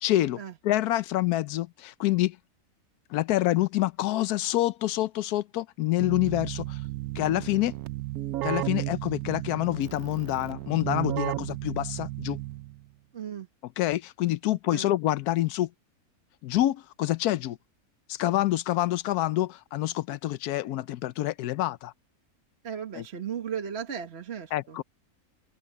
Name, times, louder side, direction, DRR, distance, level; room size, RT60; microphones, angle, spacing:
voice 1, 0.0-0.4 0.6-2.4 3.1-6.8 7.1-7.7 8.4-12.4 13.8-15.7 16.4-17.6 18.1-21.9 23.0-23.1 24.5-24.8, left 15 dB, 90° left, 1.1 m, -27 dB
Keyboard (musical), 6.0-12.9, right 16 dB, 75° right, 1.0 m, -34 dB
voice 2, 13.1-13.5 14.7-14.9 22.6-24.8, right 8 dB, 45° right, 1.5 m, -36 dB
omnidirectional pair, 1.6 m